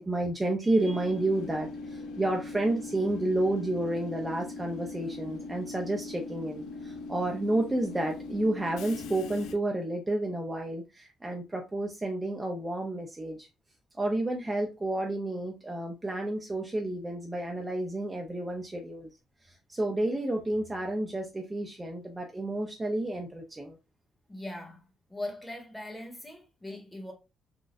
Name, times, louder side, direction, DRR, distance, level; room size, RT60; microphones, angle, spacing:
voice 1, 0.0-13.5 14.0-19.1 19.4-23.8, right 1 dB, 20° right, 0.5 m, -31 dB
Train / Subway metro underground, 0.8-9.5, left 3 dB, 85° left, 0.4 m, -40 dB
voice 2, 24.3-27.1, left 1 dB, 10° left, 1.3 m, -40 dB
4.0 x 2.3 x 2.4 m
cardioid pair, 90°, 0 cm